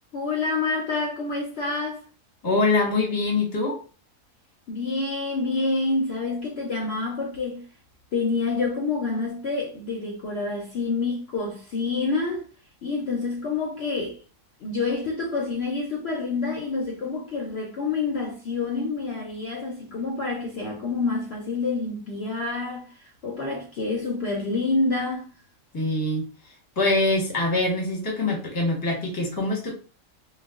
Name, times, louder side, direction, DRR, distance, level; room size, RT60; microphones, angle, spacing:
voice 1, 0.1-2.0 4.7-7.6 8.1-12.4 12.8-14.2 14.6-25.3, left 3 dB, 60° left, 0.7 m, -27 dB
voice 2, 2.4-3.8 25.7-26.3 26.8-29.8, left 2 dB, 20° left, 0.7 m, -24 dB
2.3 x 2.2 x 3.5 m
omnidirectional pair, 1.5 m